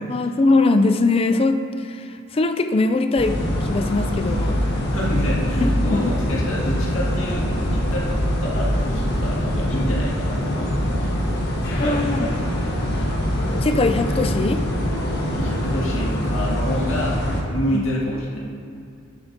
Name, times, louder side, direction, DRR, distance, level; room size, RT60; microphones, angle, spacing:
voice 1, 0.1-4.6 5.6-6.1 11.8-12.3 13.6-14.6 17.7-17.8, left 3 dB, 25° left, 8 dB, 0.3 m, -21 dB
sound 1, 3.2-17.4, equal, 50° left, 1.4 m, -23 dB
voice 2, 4.9-11.2 11.6-12.5 13.0-13.1 15.3-18.4, equal, 70° left, -5 dB, 2.0 m, -28 dB
11.0 x 8.6 x 2.7 m, 2.7 s
head